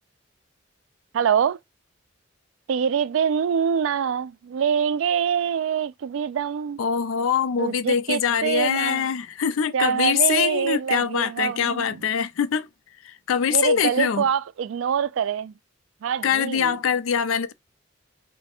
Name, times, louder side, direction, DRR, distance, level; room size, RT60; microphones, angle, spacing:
voice 1, 1.1-1.6 2.7-6.8 7.6-9.0 9.7-12.0 13.5-15.5 16.0-16.8, right 7 dB, 80° right, 0.3 m, -25 dB
voice 2, 6.8-12.7 13.0-14.2 16.2-17.5, left 7 dB, 90° left, 0.4 m, -23 dB
3.1 x 2.1 x 4.2 m
head